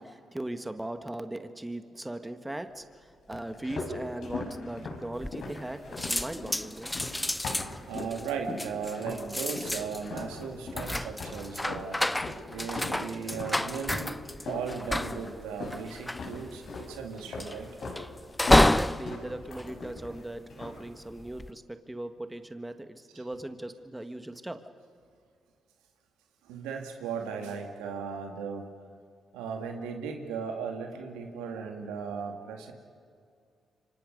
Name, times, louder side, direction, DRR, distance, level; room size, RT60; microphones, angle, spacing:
voice 1, 0.0-6.9 18.6-24.6, right 1 dB, 15° right, 8 dB, 1.7 m, -39 dB
sound 1, 3.3-8.2 8.5-9.3 9.6-15.8 16.1-16.9 17.3-18.0 18.3-20.2 20.5-20.9, left 3 dB, 65° left, 6.2 m, -39 dB
sound 2, 5.2-5.7 6.0-20.5 21.1-21.5, left 1 dB, 10° left, 0.8 m, -30 dB
voice 2, 7.5-12.0 12.5-14.2 14.5-17.9 23.1-23.2 26.4-28.7 29.3-32.7, right 6 dB, 90° right, 3 dB, 2.3 m, -37 dB
27.5 x 25.0 x 5.4 m, 2.2 s
supercardioid pair, 50°, 0 cm